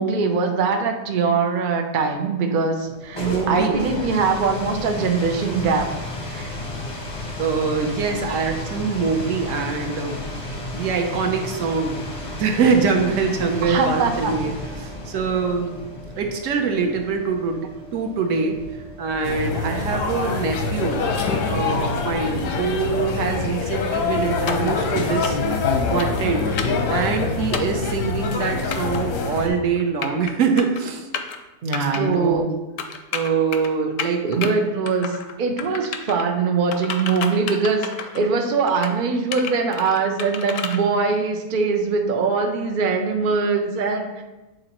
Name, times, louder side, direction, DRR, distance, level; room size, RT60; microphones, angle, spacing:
voice 1, 0.0-5.9 6.3-6.5 8.3-8.4 13.7-14.3 31.6-32.5 34.2-44.2, right 4 dB, 85° right, 3 dB, 0.4 m, -22 dB
sound 1, 2.9-19.6, left 1 dB, 35° left, 0.6 m, -33 dB
voice 2, 3.2-3.8 7.4-10.2 10.7-12.0 12.4-14.5 14.8-15.8 16.2-18.6 19.0-21.0 21.5-25.4 25.9-26.5 26.9-31.1 31.9-32.5 33.1-34.6, right 5 dB, 60° right, 3 dB, 1.0 m, -24 dB
sound 2, 19.2-29.5, left 4 dB, 90° left, 1.4 m, -24 dB
sound 3, 24.5-24.7 25.2-25.5 26.0-26.2 26.6-26.8 27.5-27.8 28.7-29.0 29.8-30.3 30.6-30.8 31.1-31.4 31.7-32.0 32.8-33.7 34.0-34.5 34.8-35.3 35.6-36.2 36.7-38.3 38.7-38.9 39.3-40.8, left 7 dB, 65° left, 0.8 m, -30 dB
8.4 x 3.8 x 3.0 m, 1.1 s
omnidirectional pair, 1.7 m